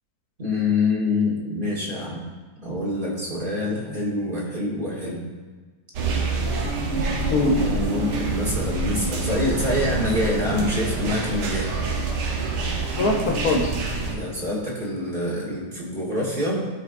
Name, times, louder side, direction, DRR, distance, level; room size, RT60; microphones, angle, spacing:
voice 1, 0.4-2.2 2.6-5.2 7.4-11.7 14.1-16.7, left 2 dB, 30° right, -5 dB, 1.5 m, -26 dB
sound 1, 5.9-14.1, right 3 dB, 90° right, 1.6 m, -26 dB
voice 2, 6.8-8.7 13.0-13.8, left 2 dB, 65° left, 1 dB, 1.5 m, -25 dB
13.0 x 4.5 x 2.5 m, 1.4 s
omnidirectional pair, 1.8 m